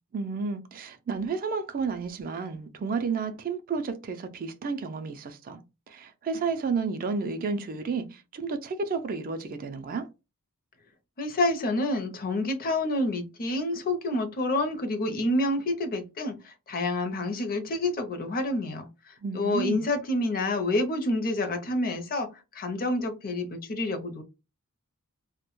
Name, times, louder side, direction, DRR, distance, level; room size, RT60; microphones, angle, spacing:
voice 1, 0.1-5.6 5.9-10.1 19.2-19.9, right 5 dB, 40° right, 0.3 m, -31 dB
voice 2, 11.2-22.3 22.5-24.2, left 2 dB, 40° left, 0.5 m, -28 dB
2.1 x 2.1 x 2.9 m
head